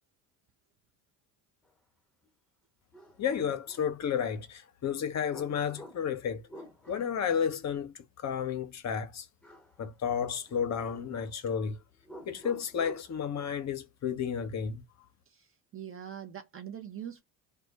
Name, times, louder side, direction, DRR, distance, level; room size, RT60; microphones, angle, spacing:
sound 1, 2.2-2.3 2.9-4.3 5.3-7.2 9.4-9.8 10.1-11.3 12.0-13.2, equal, ahead, 0.9 m, -50 dB
voice 1, 3.2-6.4 6.9-9.3 9.8-11.8 12.3-14.8, left 7 dB, 35° left, 0.7 m, -32 dB
voice 2, 15.3-17.2, right 9 dB, 30° right, 0.6 m, -43 dB
2.2 x 2.1 x 2.7 m
hypercardioid pair, 70°, 45 cm